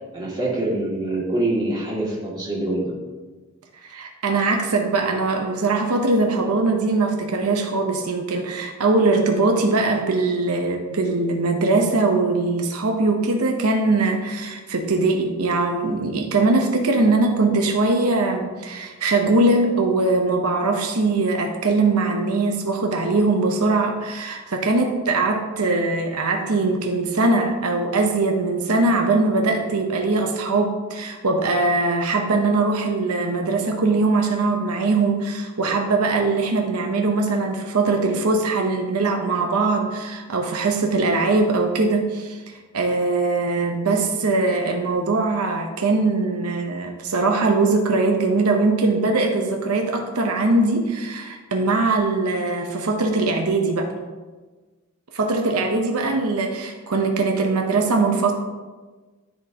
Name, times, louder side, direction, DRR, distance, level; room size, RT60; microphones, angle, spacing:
voice 1, 0.1-2.9, right 2 dB, 20° right, -7 dB, 2.1 m, -25 dB
voice 2, 3.8-53.9 55.1-58.3, right 3 dB, 85° right, 3 dB, 0.8 m, -21 dB
13.0 x 4.4 x 2.8 m, 1.3 s
head